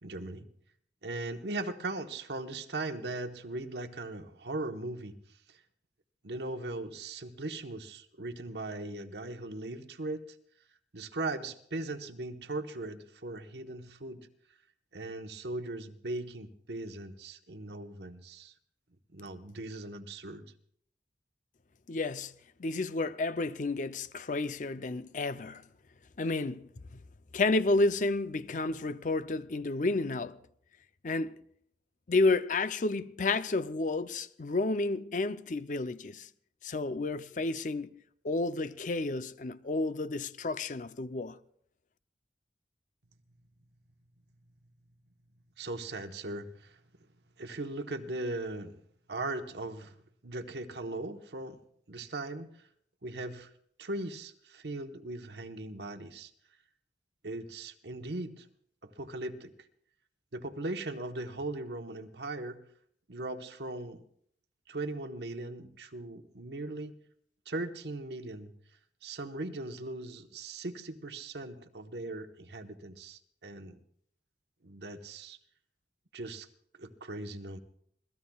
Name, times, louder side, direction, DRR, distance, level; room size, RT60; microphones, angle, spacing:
voice 1, 0.0-0.5 1.0-5.1 5.5-5.6 6.2-10.2 10.9-14.3 14.9-18.5 19.1-20.4 45.6-46.8 47.4-48.8 49.1-49.9 50.2-51.6 51.9-52.5 53.0-53.5 53.8-56.3 57.2-58.5 58.8-59.5 60.3-62.6 63.1-64.0 64.7-67.0 67.5-68.5 69.0-73.8 74.6-75.4 76.1-76.5 76.8-77.6, right 2 dB, 70° right, 1.1 m, -39 dB
voice 2, 21.9-22.3 22.6-25.6 26.2-26.7 27.3-30.4 31.0-31.4 32.1-36.3 36.6-38.0 38.2-41.4, left 3 dB, 45° left, 0.5 m, -31 dB
26.5 x 18.0 x 2.3 m
head